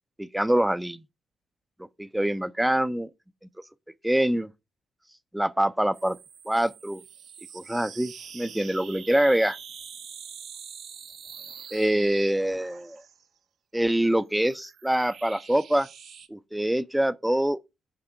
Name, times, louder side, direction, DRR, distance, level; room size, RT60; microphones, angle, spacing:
voice 1, 0.2-1.0 2.0-3.1 4.0-4.5 5.3-6.2 6.5-7.0 7.5-9.6 11.7-13.0 13.7-15.9 16.3-17.6, right 1 dB, 5° right, 0.5 m, -25 dB
sound 1, 5.9-13.2 14.1-16.3, right 7 dB, 65° right, 0.7 m, -45 dB
9.8 x 3.5 x 4.5 m
cardioid pair, 90°, 0 cm